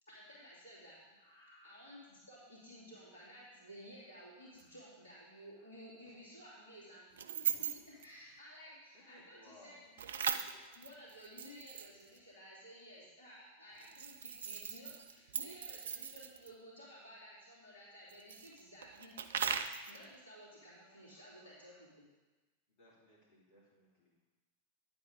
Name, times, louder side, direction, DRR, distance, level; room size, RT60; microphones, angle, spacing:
voice 1, 0.1-7.1 7.3-19.1 19.9-22.1, equal, 70° left, -6 dB, 2.8 m, -55 dB
sound 1, 4.6-4.7 7.2-8.1 10.0-12.2 13.8-16.5 18.1-20.0, right 7 dB, 65° right, 0.5 m, -39 dB
voice 2, 8.9-9.8 22.8-24.1, left 1 dB, 50° left, -6 dB, 2.7 m, -62 dB
9.6 x 7.8 x 3.8 m, 1.2 s
figure-of-eight pair, 90°, 0 cm